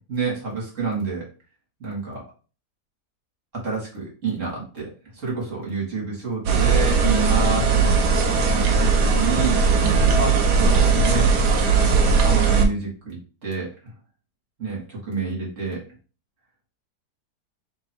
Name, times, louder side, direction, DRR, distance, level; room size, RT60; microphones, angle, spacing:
voice 1, 0.1-1.2 1.8-2.2 3.5-8.0 8.4-9.6 10.2-11.3 12.2-13.9 14.6-15.8, right 4 dB, 50° right, -3 dB, 2.4 m, -28 dB
sound 1, 6.5-12.7, right 5 dB, 80° right, 1.3 m, -18 dB
3.7 x 3.1 x 4.4 m, 0.35 s
omnidirectional pair, 1.7 m